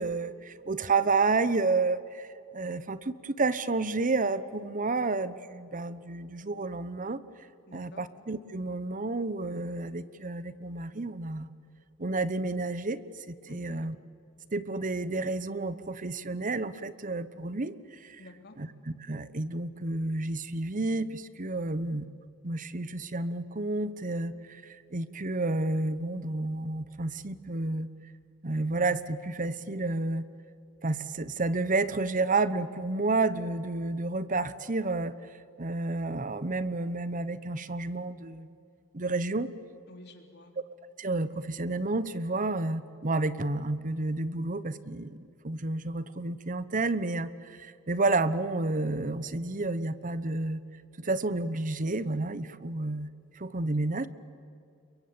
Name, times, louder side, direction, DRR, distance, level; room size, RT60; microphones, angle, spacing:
voice 1, 0.0-2.3 2.5-7.2 7.7-11.5 12.0-13.0 13.3-14.0 14.5-18.2 18.6-22.1 22.4-27.9 28.4-30.2 30.8-35.1 35.6-38.5 38.9-39.5 41.0-45.2 45.4-50.6 51.0-53.1 53.4-54.1, right 3 dB, 40° right, 15 dB, 1.0 m, -30 dB
voice 2, 7.7-8.0 13.5-13.8 18.2-18.5 39.9-40.5, left 2 dB, 55° left, 5 dB, 3.4 m, -50 dB
28.5 x 23.0 x 8.8 m, 2.6 s
head